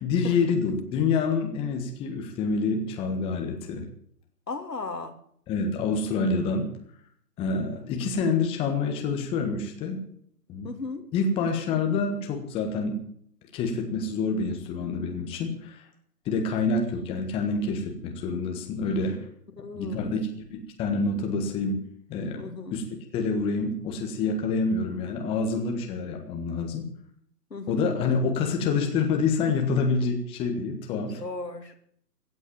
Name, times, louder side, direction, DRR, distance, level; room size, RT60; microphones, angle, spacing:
voice 1, 0.0-3.8 5.5-6.7 7.4-10.0 10.5-10.7 11.1-13.0 13.5-15.8 16.2-19.2 19.7-21.8 22.1-22.4 22.7-22.8 23.1-26.8 27.7-31.2, left 4 dB, 10° left, 3 dB, 1.5 m, -27 dB
voice 2, 4.5-5.2 10.6-11.1 19.6-20.2 22.4-22.8 27.5-27.8 31.2-31.7, left 3 dB, 85° left, 5 dB, 3.0 m, -36 dB
16.0 x 8.6 x 9.1 m, 0.64 s
figure-of-eight pair, 140°, 48 cm